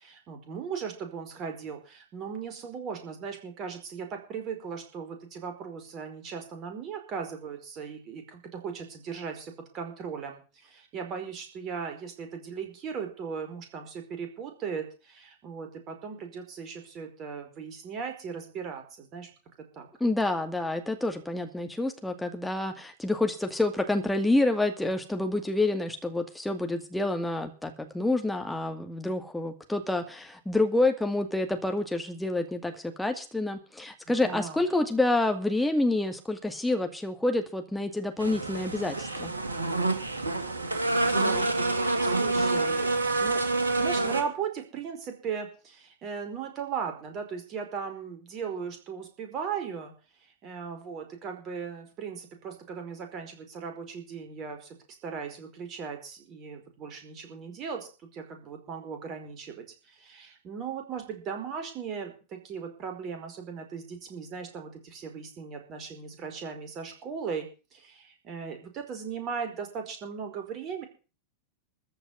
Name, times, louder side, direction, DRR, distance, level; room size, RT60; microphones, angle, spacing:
voice 1, 0.0-19.3 19.7-19.9 34.1-34.6 41.1-43.4 43.8-49.9 50.4-54.8 55.0-70.8, right 6 dB, 35° right, 5 dB, 5.0 m, -38 dB
voice 2, 20.0-39.3, left 2 dB, 5° left, 5 dB, 2.2 m, -28 dB
sound 1, 38.2-44.2, right 2 dB, 75° right, 2.4 m, -27 dB
14.5 x 6.9 x 9.7 m, 0.36 s
figure-of-eight pair, 90°, 0 cm